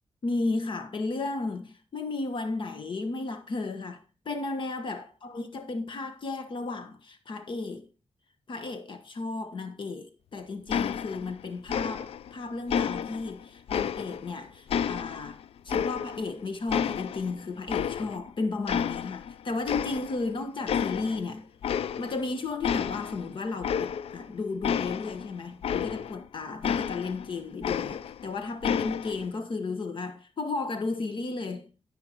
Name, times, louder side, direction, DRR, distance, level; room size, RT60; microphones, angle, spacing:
voice 1, 0.2-7.9 8.5-21.5 22.0-31.7, left 3 dB, 55° left, 1.2 m, -34 dB
sound 1, 10.7-11.4 11.7-12.3 12.7-14.3 14.7-16.4 16.7-18.3 18.7-19.3 19.7-20.3 20.7-21.2 21.6-22.3 22.6-26.2 26.6-28.3 28.6-29.3, left 8 dB, 80° left, 0.4 m, -31 dB
16.5 x 5.7 x 3.0 m
wide cardioid pair, 130°, 10 cm